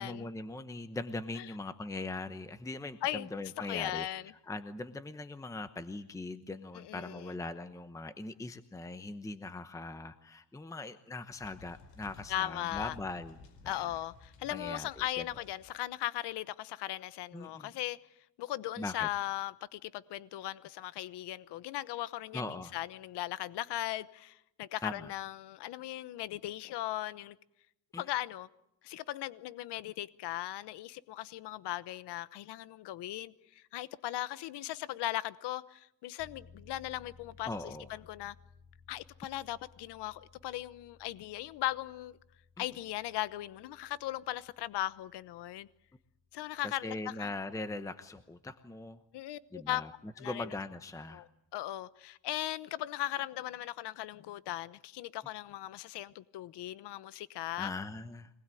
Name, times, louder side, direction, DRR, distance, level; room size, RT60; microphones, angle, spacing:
voice 1, 0.0-4.1 4.5-14.0 14.5-14.9 15.2-15.3 17.3-17.7 18.8-19.1 22.3-22.7 24.8-25.1 27.9-28.0 37.4-37.9 42.6-42.7 46.6-49.0 49.5-49.9 50.2-51.2 57.6-58.3, left 2 dB, 10° left, 1.0 m, -41 dB
voice 2, 3.6-4.3 6.7-7.3 12.3-12.9 13.7-18.0 18.4-27.4 28.0-28.5 28.8-38.3 38.9-42.2 42.6-45.7 46.3-47.3 49.1-49.8 50.2-50.5 51.1-57.7, left 14 dB, 75° left, 1.1 m, -38 dB
sound 1, 11.3-15.8, left 3 dB, 90° left, 4.9 m, -55 dB
sound 2, 36.2-48.7 49.1-49.2, left 4 dB, 50° left, 4.0 m, -61 dB
26.0 x 20.0 x 9.2 m
cardioid pair, 140°, 41 cm